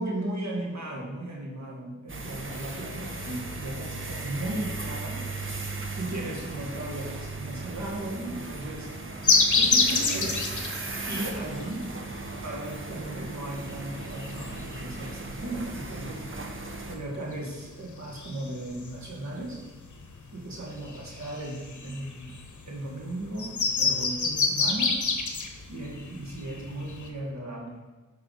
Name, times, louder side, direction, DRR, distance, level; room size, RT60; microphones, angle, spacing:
voice 1, 0.0-5.2 6.0-8.9 9.6-10.5 11.1-11.9 12.4-16.2 16.9-19.7 20.3-22.3 22.7-25.0 25.7-27.8, right 1 dB, 65° right, -2 dB, 1.7 m, -36 dB
sound 1, 2.1-17.0, right 2 dB, 45° right, 1.0 m, -37 dB
sound 2, 9.2-27.1, left 4 dB, 75° left, 1.0 m, -28 dB
8.8 x 5.6 x 4.1 m, 1.2 s
wide cardioid pair, 100°, 30 cm